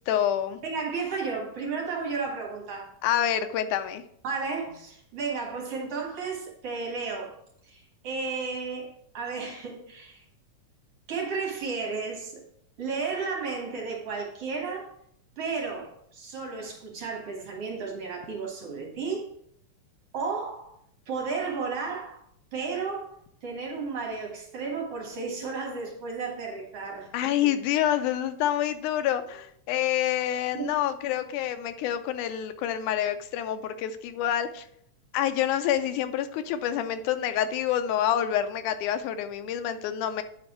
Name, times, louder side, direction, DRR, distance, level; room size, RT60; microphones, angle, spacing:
voice 1, 0.1-0.6 3.0-4.0 27.1-34.7 35.1-40.2, left 10 dB, 85° left, 10 dB, 2.1 m, -27 dB
voice 2, 0.6-2.9 4.2-7.4 7.6-10.2 11.1-12.4 12.8-14.9 15.4-19.3 20.1-20.8 21.1-22.2 22.5-27.3 29.7-29.8 30.5-30.7, right 4 dB, 55° right, -1 dB, 2.4 m, -33 dB
9.5 x 4.0 x 4.4 m, 0.70 s
omnidirectional pair, 3.5 m